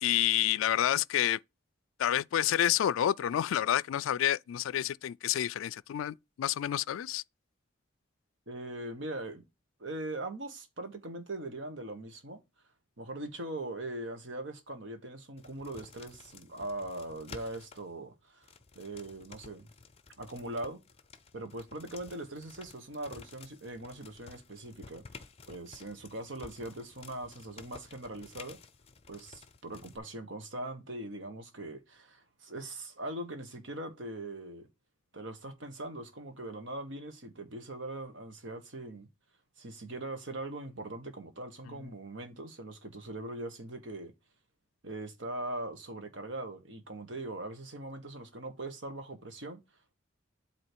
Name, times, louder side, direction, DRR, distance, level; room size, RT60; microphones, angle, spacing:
voice 1, 0.0-1.4 2.0-7.2, left 11 dB, 90° left, 0.3 m, -29 dB
voice 2, 8.5-9.4 9.8-12.4 13.0-19.7 20.2-20.8 21.3-28.6 29.1-34.7 35.1-39.1 39.6-44.1 44.8-49.6, right 1 dB, 70° right, 1.3 m, -41 dB
sound 1, 15.4-17.8 18.4-30.0, left 4 dB, 30° left, 0.6 m, -53 dB
8.1 x 3.0 x 4.5 m
head